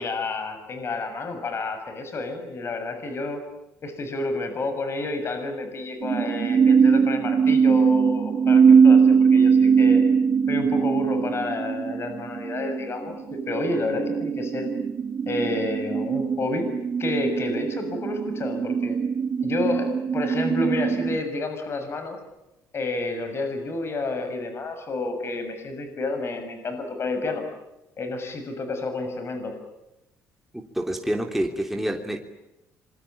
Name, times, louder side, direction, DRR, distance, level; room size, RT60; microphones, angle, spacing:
voice 1, 0.0-3.4 3.8-10.0 10.5-14.7 15.3-16.7 17.0-19.0 19.4-22.2 22.7-27.4 28.0-29.6, left 2 dB, 45° left, 7 dB, 6.9 m, -30 dB
sound 1, 6.0-21.2, right 6 dB, 45° right, 1.3 m, -21 dB
voice 2, 30.8-32.2, right 1 dB, 5° right, 3 dB, 3.3 m, -27 dB
27.0 x 23.5 x 8.8 m, 0.91 s
cardioid pair, 90°, 6 cm